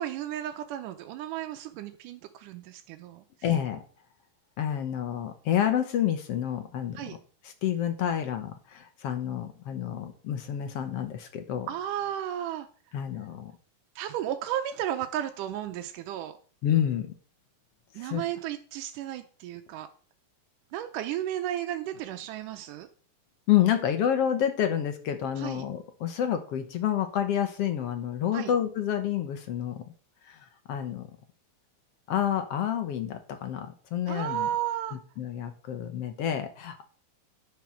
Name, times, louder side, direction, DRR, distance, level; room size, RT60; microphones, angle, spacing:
voice 1, 0.0-3.2 6.9-7.2 11.7-12.7 14.0-16.4 17.9-19.9 20.7-22.9 25.4-25.6 28.3-28.5 34.1-35.0, right 11 dB, 90° right, 6 dB, 2.3 m, -33 dB
voice 2, 3.4-3.8 4.6-7.0 7.6-11.7 12.9-13.5 16.6-17.1 18.0-18.2 23.5-29.8 30.3-30.4 30.7-31.1 32.1-34.5 35.2-36.8, left 10 dB, 65° left, 7 dB, 1.7 m, -28 dB
10.5 x 5.8 x 6.2 m, 0.41 s
omnidirectional pair, 3.6 m